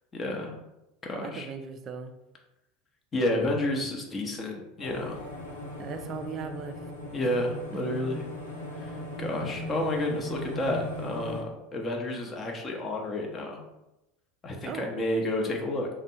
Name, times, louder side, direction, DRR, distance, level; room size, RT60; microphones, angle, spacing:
voice 1, 0.1-0.6 1.0-1.5 3.1-5.2 7.1-8.2 8.7-13.6 14.4-15.9, left 1 dB, 25° left, 1 dB, 0.8 m, -30 dB
voice 2, 1.1-2.1 5.8-6.9 14.6-14.9, right 6 dB, 35° right, 8 dB, 0.4 m, -38 dB
sound 1, 4.8-11.4, left 1 dB, 85° left, 0.7 m, -38 dB
3.4 x 2.1 x 4.1 m, 0.94 s
figure-of-eight pair, 75°, 0 cm